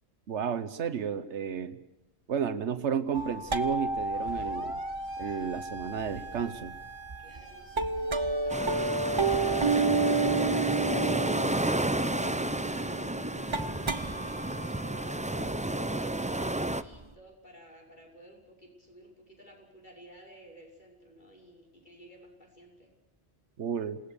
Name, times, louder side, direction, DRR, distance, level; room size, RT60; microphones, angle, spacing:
voice 1, 0.3-1.8 2.3-4.8 5.2-6.8 23.6-24.0, right 7 dB, 85° right, 11 dB, 1.3 m, -32 dB
sound 1, 3.1-17.0, right 3 dB, 30° right, 0.9 m, -32 dB
Siren, 4.1-16.5, right 4 dB, 70° right, 1.9 m, -47 dB
voice 2, 7.2-22.9, equal, 45° left, 0 dB, 6.3 m, -54 dB
sound 2, 8.5-16.8, right 1 dB, 10° right, 0.6 m, -31 dB
28.0 x 18.5 x 6.8 m, 0.94 s
omnidirectional pair, 1.1 m